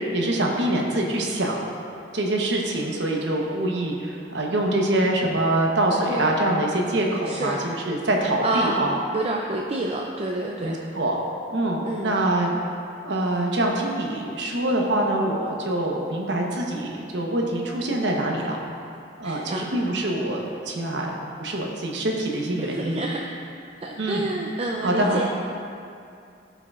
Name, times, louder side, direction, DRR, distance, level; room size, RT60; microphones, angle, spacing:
voice 1, 0.1-1.6 2.1-8.9 10.6-11.2 11.5-12.5 13.0-18.6 19.2-21.1 21.4-23.0 24.0-24.2 24.8-25.2, right 1 dB, 75° right, 0 dB, 0.9 m, -24 dB
voice 2, 7.3-7.6 8.4-10.8 11.8-12.2 19.2-19.7 22.6-23.3 23.8-25.2, right 2 dB, 35° right, 0 dB, 0.4 m, -28 dB
13.5 x 5.7 x 2.4 m, 2.5 s
head